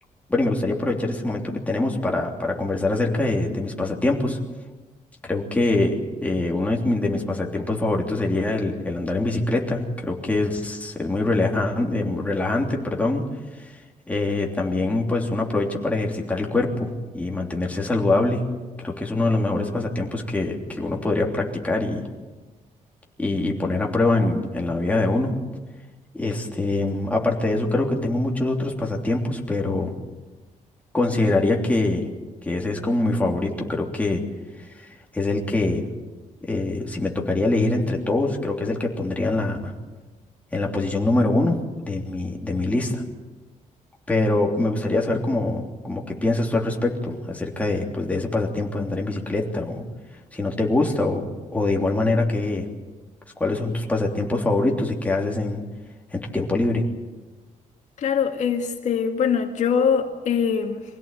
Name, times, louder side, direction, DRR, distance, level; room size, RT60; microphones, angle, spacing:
voice 1, 0.3-4.4 5.3-6.0 6.2-13.2 13.6-13.8 14.1-18.5 18.8-22.0 23.2-25.3 26.1-29.9 30.9-32.1 32.4-34.2 34.8-35.9 36.4-39.7 40.5-41.6 41.8-43.0 44.1-49.8 50.3-51.3 51.5-52.7 53.4-55.6 56.1-56.8, left 2 dB, 10° left, 0 dB, 3.2 m, -24 dB
voice 2, 58.0-60.8, left 7 dB, 65° left, 4 dB, 2.0 m, -23 dB
24.5 x 17.0 x 9.1 m, 1.3 s
wide cardioid pair, 165°, 13 cm